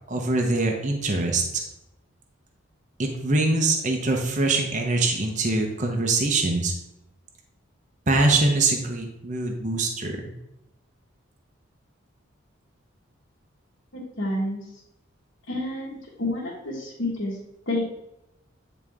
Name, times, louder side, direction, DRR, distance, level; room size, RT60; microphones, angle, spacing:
voice 1, 0.1-1.6 3.0-6.7 8.1-10.2, right 2 dB, 35° right, 2 dB, 0.9 m, -23 dB
voice 2, 13.9-14.6 15.5-17.4 17.6-17.8, left 1 dB, 80° left, -7 dB, 1.8 m, -29 dB
9.1 x 4.0 x 3.6 m, 0.85 s
head